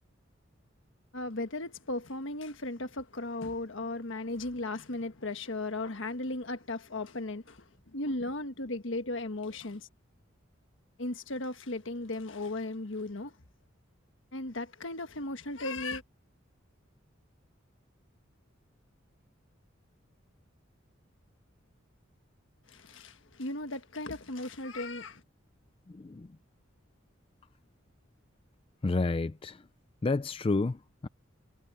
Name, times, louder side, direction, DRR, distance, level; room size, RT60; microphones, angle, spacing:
voice 1, 1.1-9.9 11.0-13.3 14.3-16.0 22.7-25.2, left 2 dB, 70° left, 1.5 m, -36 dB
voice 2, 25.9-26.4 28.8-29.7 30.0-31.1, left 3 dB, 25° left, 0.4 m, -30 dB
head